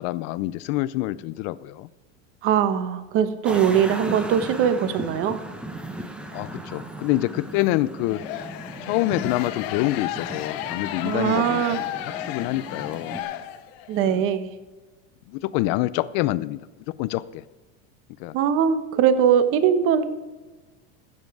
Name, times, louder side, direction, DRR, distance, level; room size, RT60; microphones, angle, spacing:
voice 1, 0.0-1.9 6.3-8.2 8.9-11.9 12.3-13.2 14.1-14.2 15.3-16.6 17.0-17.4 18.2-18.3, left 17 dB, 45° left, 18 dB, 0.4 m, -26 dB
voice 2, 2.4-5.4 11.0-11.8 13.9-14.5 18.3-20.1, right 8 dB, 40° right, 12 dB, 0.9 m, -21 dB
sound 1, 3.4-13.2, right 1 dB, 5° right, 0.6 m, -37 dB
sound 2, 8.0-14.0, left 13 dB, 60° left, 1.0 m, -34 dB
16.0 x 7.4 x 4.7 m, 1.2 s
supercardioid pair, 160°, 34 cm